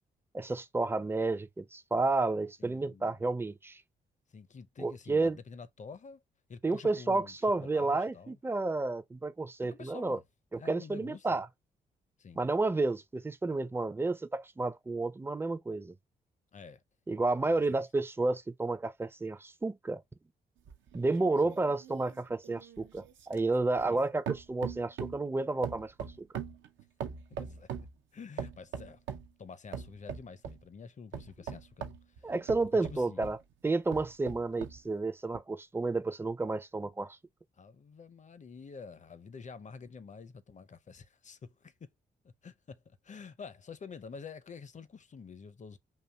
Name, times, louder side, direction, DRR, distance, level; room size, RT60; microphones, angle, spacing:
voice 1, 0.3-3.8 4.8-5.4 6.6-10.2 10.5-11.5 12.4-15.9 17.1-20.0 20.9-25.9 26.2-26.3 32.2-33.4 33.6-37.2, right 3 dB, 10° right, 0.5 m, -31 dB
voice 2, 2.6-3.2 4.3-6.2 6.5-8.4 9.6-10.2 10.6-11.3 12.2-12.4 16.5-16.8 17.5-17.8 21.4-21.6 23.8-24.0 27.4-27.7 28.1-29.0 29.4-32.3 32.6-33.3 37.6-41.9 42.2-45.8, left 5 dB, 35° left, 0.6 m, -48 dB
sound 1, 20.6-24.0 24.3-25.3 25.6-27.9 28.4-29.3 29.7-30.6 31.1-33.4 33.9-34.8 35.3-35.4, right 8 dB, 70° right, 0.6 m, -41 dB
5.5 x 2.6 x 2.3 m
hypercardioid pair, 40°, 20 cm